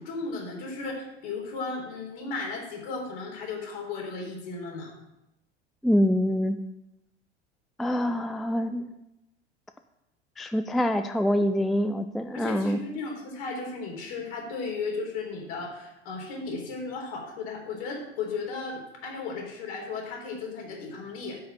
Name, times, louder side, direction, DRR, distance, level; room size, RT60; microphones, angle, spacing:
voice 1, 0.0-4.9 12.3-21.4, left 4 dB, 55° left, 0 dB, 4.0 m, -35 dB
voice 2, 5.8-6.6 7.8-8.9 10.4-12.8, equal, ahead, 8 dB, 0.4 m, -25 dB
9.4 x 5.7 x 7.8 m, 0.89 s
figure-of-eight pair, 80°, 33 cm